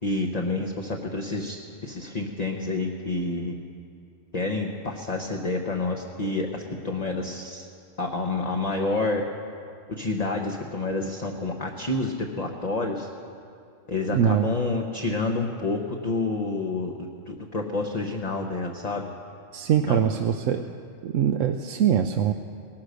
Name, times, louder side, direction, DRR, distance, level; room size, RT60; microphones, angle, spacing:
voice 1, 0.0-3.5 4.3-7.6 8.0-9.2 10.0-13.1 13.9-19.1 19.9-20.0, left 2 dB, 35° left, 1 dB, 0.9 m, -29 dB
voice 2, 14.1-14.5 19.5-20.7 21.0-22.3, right 9 dB, 80° right, 6 dB, 1.0 m, -23 dB
18.5 x 12.0 x 6.5 m, 2.4 s
omnidirectional pair, 1.3 m